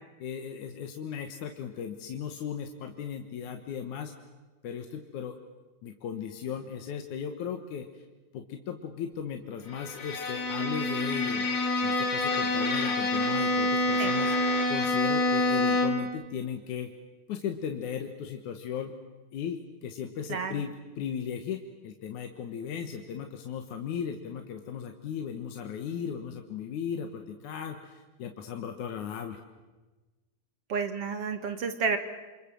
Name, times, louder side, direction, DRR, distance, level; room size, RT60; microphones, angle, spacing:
voice 1, 0.2-4.1 4.6-5.4 5.8-7.9 8.3-11.5 11.8-14.3 14.7-16.9 17.3-18.9 19.3-29.4, left 8 dB, 75° left, 5 dB, 2.8 m, -36 dB
Bowed string instrument, 9.7-16.2, left 2 dB, 35° left, 3.7 m, -27 dB
voice 2, 20.3-20.6 30.7-32.0, right 5 dB, 55° right, 9 dB, 2.4 m, -30 dB
28.0 x 26.0 x 7.7 m, 1.2 s
omnidirectional pair, 3.5 m